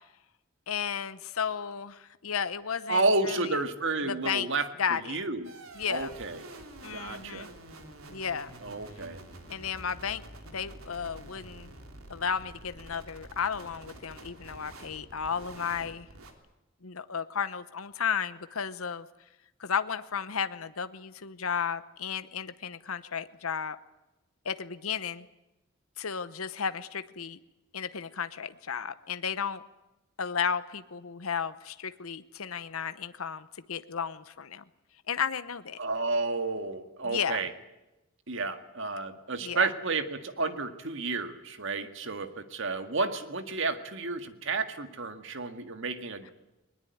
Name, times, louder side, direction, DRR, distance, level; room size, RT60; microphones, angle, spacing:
voice 1, 0.7-3.6 4.1-4.5 4.8-5.2 5.8-6.1 6.8-7.5 8.1-8.5 9.5-10.2 10.5-11.7 12.1-16.1 16.8-19.1 19.6-23.8 24.4-25.3 26.0-27.4 27.7-29.6 30.2-34.6 35.1-35.8 37.0-37.4 39.4-39.7, left 7 dB, 90° left, 12 dB, 0.9 m, -33 dB
voice 2, 2.9-5.5 5.9-6.4 6.9-7.5 8.6-9.2 35.8-37.5 38.3-46.3, right 3 dB, 65° right, 8 dB, 1.9 m, -31 dB
sound 1, 5.4-16.3, right 1 dB, 90° right, 3.3 m, -48 dB
21.0 x 20.5 x 9.4 m, 0.98 s
head